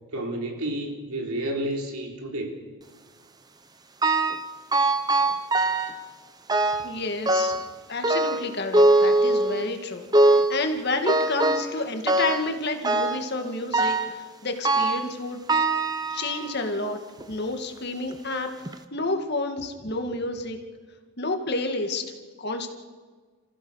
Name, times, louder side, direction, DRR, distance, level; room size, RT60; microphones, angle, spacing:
voice 1, 0.1-2.6, right 1 dB, 90° right, 2 dB, 4.0 m, -30 dB
sound 1, 4.0-4.5 4.7-6.0 6.5-6.9 7.3-7.7 8.0-9.7 10.1-10.6 11.1-11.8 12.1-12.5 12.8-13.3 13.7-14.2 14.6-15.1 15.5-16.6 17.2-17.3 18.1-18.2 18.7-18.8, right 2 dB, 20° right, 0.8 m, -22 dB
voice 2, 6.8-7.5 7.9-15.4 16.1-17.0 17.3-18.5 18.9-20.6 21.2-22.0 22.4-22.7, left 2 dB, 50° left, 5 dB, 2.2 m, -30 dB
29.5 x 15.5 x 6.5 m, 1.5 s
head